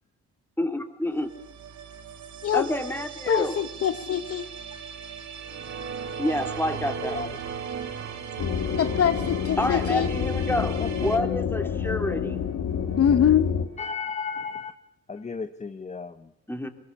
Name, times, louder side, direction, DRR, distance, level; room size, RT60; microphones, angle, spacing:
voice 1, 0.6-1.3 2.5-3.5 6.2-7.2 9.6-12.4 16.5-16.7, left 1 dB, 5° left, 6 dB, 3.2 m, -28 dB
sound 1, 1.1-11.2, right 7 dB, 70° right, 2.6 m, -41 dB
voice 2, 3.3-4.4 8.8-10.1 13.0-13.7, left 9 dB, 50° left, 12 dB, 0.9 m, -23 dB
sound 2, 5.4-14.1, right 6 dB, 50° right, 2.0 m, -39 dB
voice 3, 6.6-7.4 10.8-11.1 13.8-14.7 15.1-16.3, left 5 dB, 25° left, 10 dB, 1.0 m, -34 dB
sound 3, 8.4-13.7, left 7 dB, 65° left, 1.9 m, -28 dB
22.0 x 21.0 x 8.4 m, 0.76 s
cardioid pair, 90°, 30 cm